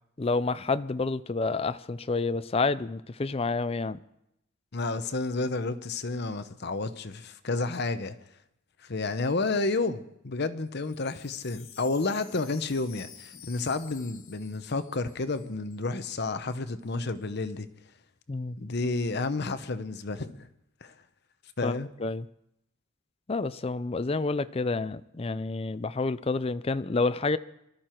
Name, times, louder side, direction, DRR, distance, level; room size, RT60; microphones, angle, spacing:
voice 1, 0.2-4.0 18.3-18.6 21.6-22.3 23.3-27.4, left 3 dB, 30° left, 0.5 m, -29 dB
voice 2, 4.7-8.2 8.9-17.7 18.6-20.5 20.8-20.9 21.6-21.9, left 3 dB, 55° left, 0.8 m, -31 dB
Wind chime, 10.7-15.9 16.1-16.2 16.5-16.9, left 9 dB, 85° left, 1.5 m, -51 dB
22.5 x 13.0 x 4.5 m
head